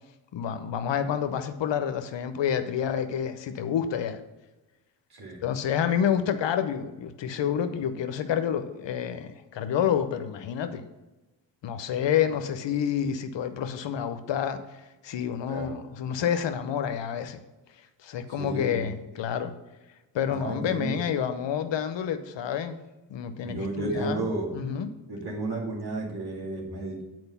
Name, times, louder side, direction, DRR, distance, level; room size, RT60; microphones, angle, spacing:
voice 1, 0.3-4.2 5.4-10.8 11.6-14.6 15.0-17.4 18.0-19.5 20.1-22.8 23.1-24.9, left 8 dB, 70° left, 10 dB, 0.8 m, -28 dB
voice 2, 5.1-5.4 15.5-15.8 18.4-18.9 20.3-21.0 23.4-24.5 25.1-27.0, right 2 dB, 55° right, -1 dB, 2.6 m, -33 dB
7.9 x 4.6 x 5.6 m, 1.1 s
supercardioid pair, 40°, 45 cm